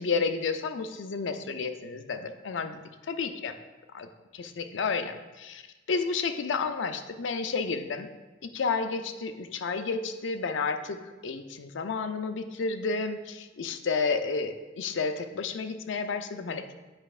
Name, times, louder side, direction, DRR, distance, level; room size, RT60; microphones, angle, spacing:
voice 1, 0.0-2.8 3.1-3.5 3.9-5.6 5.9-8.1 8.4-11.0 11.2-16.7, left 4 dB, 65° left, 7 dB, 0.5 m, -31 dB
8.7 x 5.0 x 2.4 m, 1.2 s
head